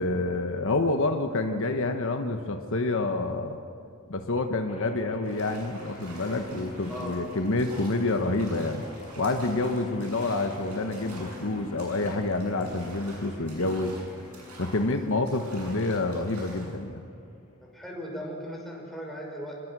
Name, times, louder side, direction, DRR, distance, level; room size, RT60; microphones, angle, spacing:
voice 1, 0.0-3.6 4.1-8.8 9.2-14.0 14.6-17.0, left 2 dB, 60° left, 5 dB, 1.3 m, -28 dB
sound 1, 4.7-17.7, left 2 dB, 30° left, 3.5 m, -46 dB
sound 2, 5.2-16.8, right 1 dB, 85° right, 7.9 m, -47 dB
voice 2, 6.9-7.2 17.7-19.5, equal, ahead, -2 dB, 6.4 m, -37 dB
26.5 x 21.0 x 6.2 m, 2.7 s
head